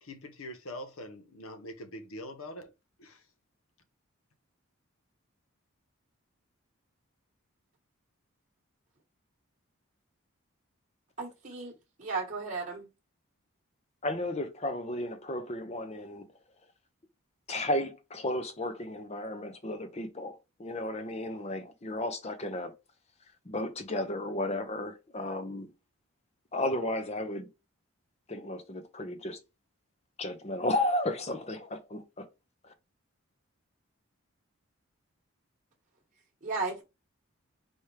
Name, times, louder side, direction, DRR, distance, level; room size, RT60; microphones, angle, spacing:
voice 1, 0.0-2.7 3.0-3.2, left 1 dB, 75° left, 0.9 m, -43 dB
voice 2, 11.2-11.7 12.0-12.9 36.4-36.8, right 3 dB, 35° right, 1.2 m, -34 dB
voice 3, 14.0-16.3 17.5-22.7 23.5-25.7 26.5-27.5 28.3-29.4 30.2-32.3 32.6-32.7, left 1 dB, 30° left, 0.6 m, -33 dB
4.4 x 3.4 x 3.2 m
head